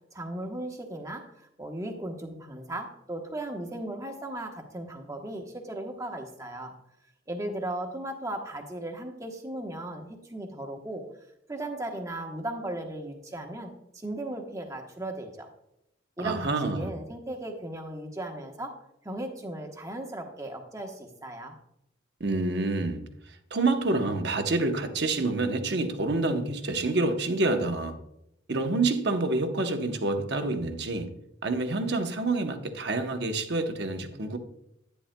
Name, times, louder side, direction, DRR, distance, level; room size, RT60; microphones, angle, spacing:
voice 1, 0.1-6.7 7.3-11.0 11.5-15.5 16.2-18.7 19.0-21.5, right 1 dB, 15° right, 3 dB, 1.0 m, -36 dB
voice 2, 16.2-16.9 22.2-28.0 28.5-31.1 31.4-34.4, right 2 dB, 55° right, 6 dB, 0.9 m, -28 dB
10.0 x 9.9 x 2.2 m, 0.81 s
head